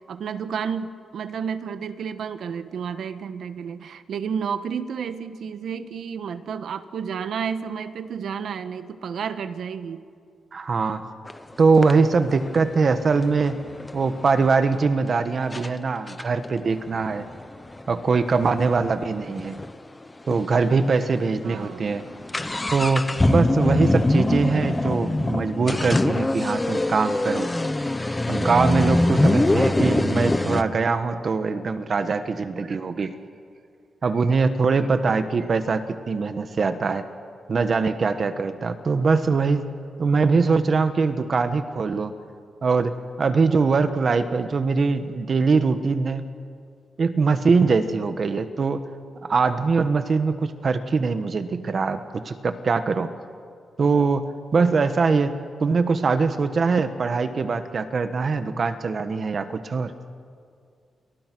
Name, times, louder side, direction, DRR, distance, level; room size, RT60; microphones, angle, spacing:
voice 1, 0.0-10.0 21.4-21.9 29.3-29.8, right 7 dB, 70° right, 10 dB, 1.3 m, -31 dB
voice 2, 10.5-11.0 11.6-13.6 13.9-17.2 17.9-19.6 20.3-22.0 22.7-27.5 28.3-33.1 34.0-37.0 37.5-39.7 40.0-42.1 42.6-46.2 47.0-48.8 49.2-53.1 53.8-59.9, right 4 dB, 40° right, 10 dB, 1.2 m, -22 dB
sound 1, 11.3-11.4 11.8-14.5 15.1-15.2 15.5-15.7 16.1-19.7 20.0-20.1 20.3-20.4 21.0-21.2 21.5-30.6, left 2 dB, 15° left, 0.8 m, -24 dB
29.5 x 27.0 x 6.2 m, 2.2 s
wide cardioid pair, 175°, 0 cm